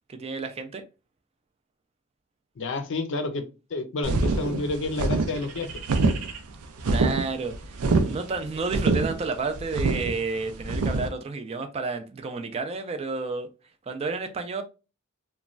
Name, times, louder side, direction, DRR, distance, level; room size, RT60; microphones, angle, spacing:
voice 1, 0.1-0.8 6.9-13.5 13.9-14.6, right 4 dB, 30° right, 0.3 m, -31 dB
voice 2, 2.6-3.4 3.7-5.7, left 3 dB, 60° left, 0.5 m, -29 dB
sound 1, 4.0-11.1, right 3 dB, 85° right, 0.5 m, -25 dB
3.0 x 2.2 x 2.4 m
head